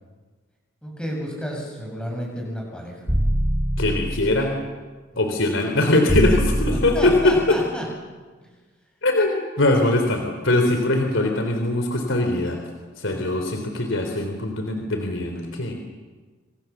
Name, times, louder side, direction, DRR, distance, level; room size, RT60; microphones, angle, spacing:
voice 1, 0.8-3.1 5.1-5.4 6.7-7.8 13.1-13.6, equal, 5° left, -1 dB, 7.8 m, -32 dB
sound 1, 3.1-4.5 6.1-7.5, equal, 20° right, 4.3 m, -23 dB
voice 2, 3.8-4.5 5.2-7.6 9.0-12.6 13.0-15.7, left 2 dB, 65° left, 4 dB, 3.4 m, -21 dB
28.0 x 26.5 x 7.3 m, 1.4 s
head